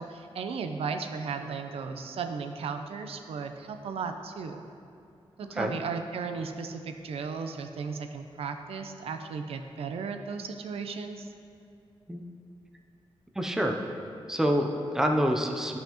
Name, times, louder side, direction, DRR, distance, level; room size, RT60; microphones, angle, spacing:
voice 1, 0.0-4.6 5.4-11.3, right 5 dB, 75° right, 6 dB, 0.5 m, -35 dB
voice 2, 13.4-13.8 14.3-15.8, equal, 5° right, 2 dB, 0.5 m, -27 dB
11.5 x 5.6 x 2.9 m, 2.6 s
wide cardioid pair, 160°, 10 cm